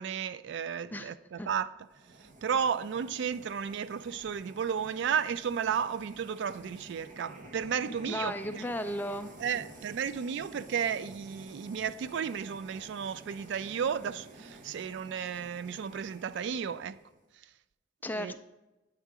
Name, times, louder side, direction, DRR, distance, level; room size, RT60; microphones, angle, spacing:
voice 1, 0.0-1.9 2.2-8.7 9.4-17.0 18.1-18.3, right 7 dB, 65° right, 0.3 m, -33 dB
sound 1, 1.8-17.2, right 2 dB, 45° right, 0.7 m, -51 dB
voice 2, 8.1-9.3 18.0-18.4, equal, 10° left, 0.4 m, -35 dB
9.1 x 3.6 x 4.8 m
head